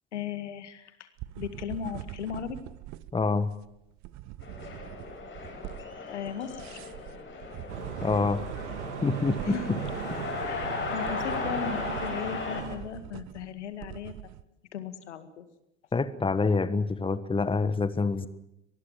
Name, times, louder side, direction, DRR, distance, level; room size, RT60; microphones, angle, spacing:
voice 1, 0.1-1.1 1.4-2.6 6.1-6.8 9.4-9.7 10.4-14.1 14.7-15.5, left 8 dB, 75° left, 11 dB, 2.0 m, -37 dB
sound 1, 1.2-14.4, right 15 dB, 50° right, 1.1 m, -44 dB
voice 2, 3.1-3.5 8.0-8.4 9.0-9.8 15.9-18.3, left 4 dB, 15° left, 14 dB, 1.4 m, -26 dB
sound 2, 4.4-12.6, left 4 dB, 35° left, 7.5 m, -37 dB
sound 3, 7.7-12.8, right 7 dB, 75° right, 2.7 m, -37 dB
24.5 x 20.0 x 7.5 m, 0.84 s
figure-of-eight pair, 65°, 35 cm